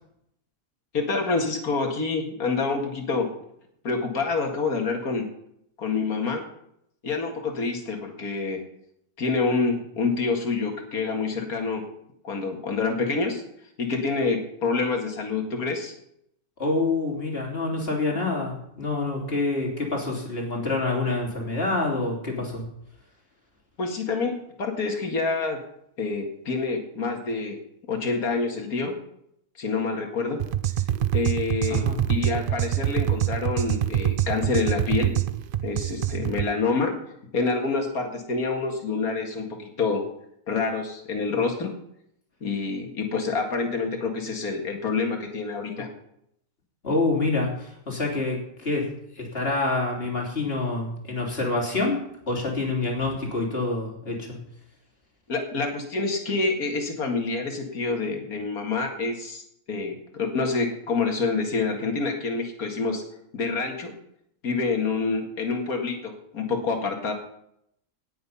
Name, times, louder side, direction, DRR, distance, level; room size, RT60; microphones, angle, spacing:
voice 1, 0.9-3.3 3.8-5.3 5.8-6.4 7.0-8.6 9.2-11.8 12.2-13.4 13.8-15.9 23.8-25.6 26.0-27.6 27.9-29.0 29.6-30.4 31.1-31.8 32.1-35.2 35.6-36.9 37.3-40.0 40.5-41.7 42.4-45.9 55.3-63.0 63.3-63.9 64.4-67.1, left 4 dB, 70° left, 3 dB, 2.5 m, -27 dB
voice 2, 16.6-22.6 31.7-32.0 46.8-48.9 49.1-54.4, left 3 dB, 40° left, 0 dB, 3.4 m, -27 dB
sound 1, 30.4-36.5, right 12 dB, 85° right, 0.4 m, -25 dB
18.0 x 7.7 x 5.5 m, 0.75 s
omnidirectional pair, 1.6 m